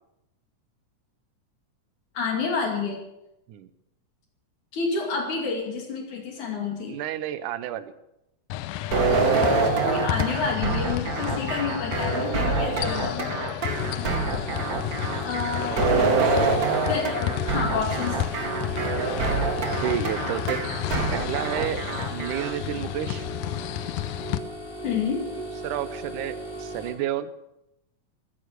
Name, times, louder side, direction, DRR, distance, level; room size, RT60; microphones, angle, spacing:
voice 1, 2.2-3.0 4.7-7.0 9.5-13.3 15.2-16.2 16.9-18.2 24.8-25.2, left 5 dB, 70° left, 2 dB, 3.8 m, -29 dB
voice 2, 6.9-7.9 14.4-14.6 15.6-16.9 19.8-20.6 21.1-23.3 25.6-27.3, right 11 dB, 85° right, 13 dB, 2.4 m, -31 dB
sound 1, 8.5-24.4, left 13 dB, 90° left, 2.2 m, -32 dB
sound 2, 8.9-22.5, right 3 dB, 35° right, 1.8 m, -26 dB
sound 3, 13.6-26.9, right 1 dB, 25° left, 8.0 m, -38 dB
15.0 x 13.5 x 6.7 m, 0.87 s
omnidirectional pair, 3.5 m